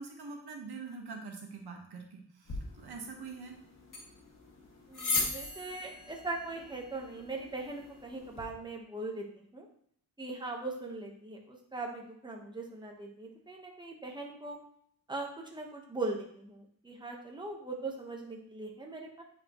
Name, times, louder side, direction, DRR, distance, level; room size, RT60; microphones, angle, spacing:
voice 1, 0.0-3.6, right 4 dB, 90° right, 2 dB, 1.5 m, -44 dB
sound 1, 2.4-8.5, left 3 dB, 55° left, 2.2 m, -39 dB
voice 2, 4.9-9.7 10.2-14.6 15.1-19.2, right 2 dB, 10° right, 0 dB, 1.3 m, -40 dB
9.1 x 4.8 x 3.1 m, 0.66 s
wide cardioid pair, 100°, 38 cm